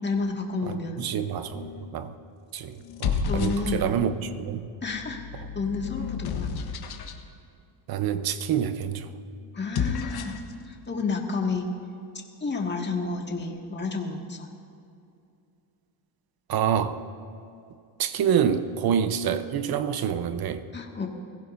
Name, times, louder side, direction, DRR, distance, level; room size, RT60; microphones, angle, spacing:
voice 1, 0.0-1.0 3.3-3.9 4.8-6.5 9.5-10.3 10.7-11.7 12.4-14.5 20.7-21.1, left 4 dB, 25° left, 1 dB, 2.0 m, -30 dB
voice 2, 0.6-2.1 2.5-4.7 7.9-9.1 16.5-17.0 18.0-20.7, right 8 dB, 50° right, 11 dB, 0.9 m, -27 dB
sound 1, 1.5-2.0 2.8-4.2 4.9-7.2 9.5-10.5, left 6 dB, 55° left, 1.4 m, -32 dB
22.5 x 15.5 x 2.7 m, 2.5 s
cardioid pair, 100°, 45 cm